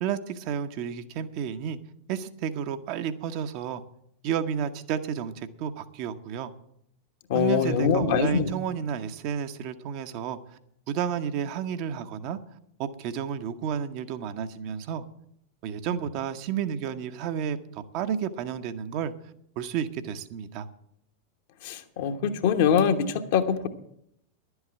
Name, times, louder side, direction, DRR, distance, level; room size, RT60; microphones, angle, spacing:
voice 1, 0.0-1.8 2.1-3.8 4.2-6.5 7.3-10.6 10.9-12.4 12.8-15.0 15.6-19.1 19.6-20.7, right 8 dB, 45° right, 8 dB, 0.9 m, -31 dB
voice 2, 7.3-8.5 21.6-23.7, left 7 dB, 50° left, 7 dB, 1.2 m, -23 dB
11.5 x 8.1 x 8.6 m, 0.73 s
figure-of-eight pair, 90°, 0 cm